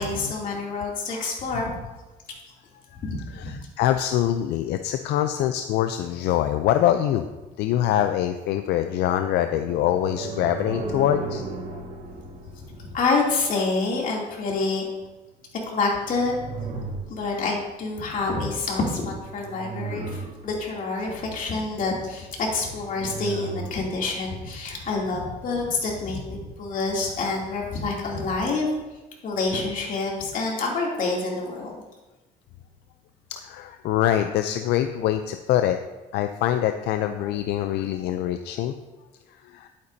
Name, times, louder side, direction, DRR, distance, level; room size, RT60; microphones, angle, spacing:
voice 1, 0.0-1.8 3.0-3.6 12.9-14.9 15.7-16.3 17.1-28.7 29.2-31.8, left 3 dB, 55° left, -2 dB, 2.8 m, -27 dB
voice 2, 3.3-7.3 7.6-11.4 25.1-25.3 33.3-35.8 36.1-38.7 39.3-39.7, left 11 dB, 80° left, 8 dB, 0.5 m, -24 dB
sound 1, 8.3-13.8 15.8-17.6 19.2-20.7 22.6-23.9, right 3 dB, 55° right, 2.8 m, -36 dB
11.5 x 8.7 x 2.7 m, 1.1 s
cardioid pair, 110°, 17 cm